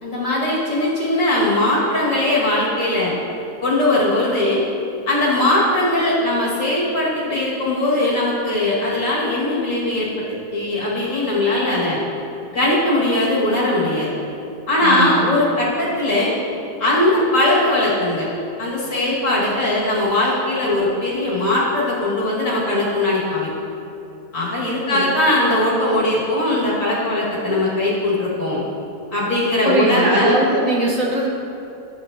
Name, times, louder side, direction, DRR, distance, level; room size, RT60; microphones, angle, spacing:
voice 1, 0.0-3.2 3.6-4.6 5.1-12.0 12.5-14.1 14.7-16.4 16.8-18.3 18.6-23.5 24.3-28.6 29.1-30.4, left 1 dB, 55° left, -6 dB, 2.0 m, -20 dB
voice 2, 14.8-15.3 24.9-25.1 29.6-31.3, right 2 dB, 60° right, -2 dB, 1.2 m, -20 dB
10.0 x 7.2 x 2.6 m, 2.8 s
omnidirectional pair, 1.7 m